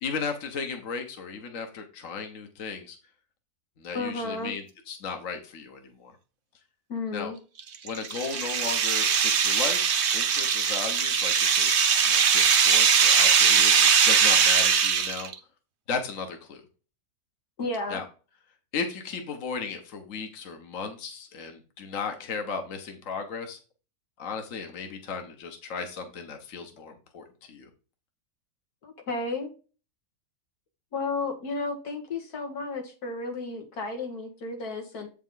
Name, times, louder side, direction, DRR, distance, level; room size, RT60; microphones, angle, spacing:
voice 1, 0.0-3.0 3.8-6.2 7.1-7.3 7.8-11.7 12.0-15.3 15.9-16.6 17.9-18.0 18.7-23.6 24.2-27.7, left 5 dB, 60° left, 5 dB, 1.5 m, -35 dB
voice 2, 3.9-4.5 6.9-7.4 17.6-18.0 28.8-29.5 30.9-35.1, left 3 dB, 90° left, 3 dB, 2.3 m, -32 dB
sound 1, 7.6-15.3, right 7 dB, 55° right, 1.0 m, -21 dB
8.1 x 5.4 x 3.9 m, 0.34 s
omnidirectional pair, 1.6 m